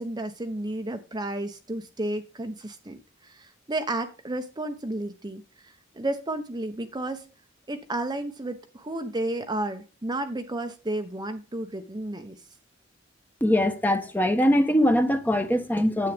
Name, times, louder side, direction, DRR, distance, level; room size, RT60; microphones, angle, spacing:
voice 1, 0.0-7.3 7.7-12.4, right 1 dB, 20° right, 0.9 m, -32 dB
voice 2, 13.4-16.1, equal, 10° left, 1.2 m, -22 dB
9.6 x 8.4 x 3.4 m
head